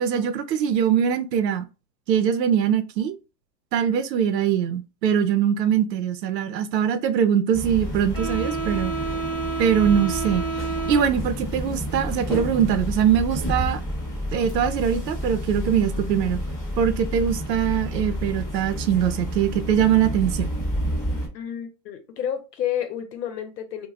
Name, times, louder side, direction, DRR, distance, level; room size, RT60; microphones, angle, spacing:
voice 1, 0.0-1.6 2.1-3.2 3.7-8.9 9.6-10.5 10.9-13.8 14.3-16.4 16.8-20.5, right 8 dB, 90° right, 0.6 m, -22 dB
sound 1, 7.5-21.3, right 1 dB, 10° left, 1.0 m, -29 dB
voice 2, 21.3-23.9, left 9 dB, 90° left, 0.9 m, -30 dB
2.4 x 2.2 x 3.1 m
hypercardioid pair, 125°, 48 cm